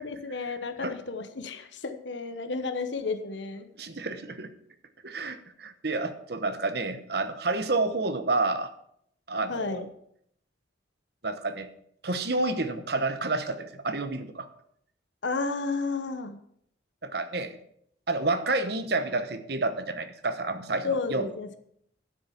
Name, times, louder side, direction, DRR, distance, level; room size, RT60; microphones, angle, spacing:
voice 1, 0.0-3.7 9.5-9.9 15.2-16.4 20.8-21.6, left 4 dB, 75° left, 8 dB, 1.0 m, -32 dB
voice 2, 3.8-4.5 5.0-8.7 9.3-9.9 11.2-11.7 12.0-14.5 17.0-17.6 18.1-21.3, right 3 dB, 55° right, 10 dB, 1.1 m, -29 dB
12.0 x 6.4 x 7.0 m, 0.69 s
head